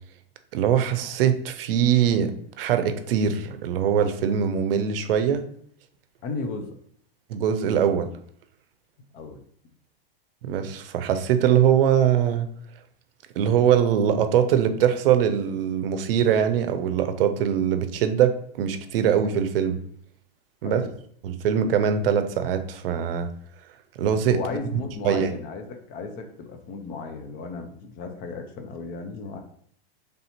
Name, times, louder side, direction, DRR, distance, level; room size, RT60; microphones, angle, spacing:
voice 1, 0.5-5.5 7.3-8.1 10.4-12.5 13.4-19.8 20.6-20.9 21.2-23.3 24.0-24.4 25.0-25.3, right 8 dB, 70° right, 9 dB, 0.6 m, -22 dB
voice 2, 6.2-6.7 9.1-9.4 20.6-20.9 24.3-29.4, left 4 dB, 30° left, 6 dB, 0.5 m, -35 dB
3.4 x 2.7 x 4.2 m, 0.63 s
supercardioid pair, 140°, 30 cm